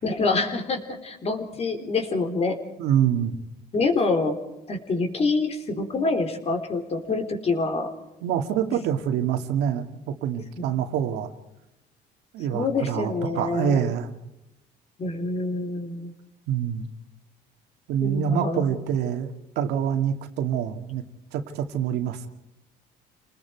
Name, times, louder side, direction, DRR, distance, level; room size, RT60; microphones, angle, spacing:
voice 1, 0.0-2.6 3.7-4.4 4.7-7.9 12.5-13.8 15.0-16.1 18.0-18.8, left 3 dB, 40° left, 6 dB, 3.9 m, -26 dB
voice 2, 2.8-3.3 8.2-11.3 12.3-14.1 16.5-16.9 17.9-21.0 21.3-22.3, right 8 dB, 90° right, 6 dB, 2.3 m, -26 dB
28.5 x 20.0 x 4.7 m, 0.92 s
cardioid pair, 110°, 17 cm